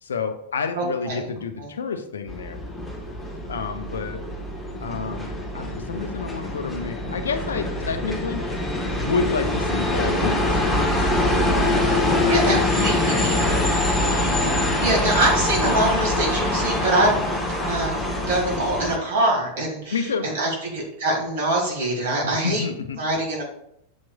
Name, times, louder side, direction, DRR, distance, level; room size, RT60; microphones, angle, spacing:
voice 1, 0.0-2.6 3.5-4.2 4.8-8.5 9.0-10.8 12.1-13.6 19.9-20.3 22.2-23.0, left 5 dB, 70° left, 8 dB, 0.4 m, -29 dB
voice 2, 0.7-1.2 1.6-1.7 9.9-10.0 12.2-13.4 14.8-17.2 17.6-18.0 18.3-22.6 23.0-23.5, right 1 dB, 55° right, -2 dB, 1.6 m, -24 dB
sound 1, 2.3-19.0, left 1 dB, 5° left, 0.8 m, -24 dB
7.0 x 3.0 x 2.2 m, 0.76 s
figure-of-eight pair, 90°, 0 cm